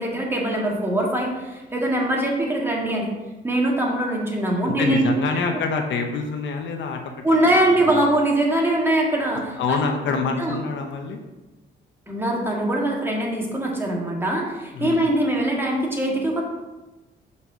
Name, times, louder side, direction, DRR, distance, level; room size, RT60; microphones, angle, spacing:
voice 1, 0.0-3.1 3.4-5.0 7.2-9.8 10.0-10.6 12.1-16.4, right 1 dB, 10° right, -2 dB, 1.8 m, -22 dB
voice 2, 4.6-7.2 7.9-8.0 9.6-11.2 14.7-15.1, left 4 dB, 70° left, 4 dB, 0.9 m, -26 dB
5.5 x 4.3 x 6.1 m, 1.1 s
cardioid pair, 90°, 20 cm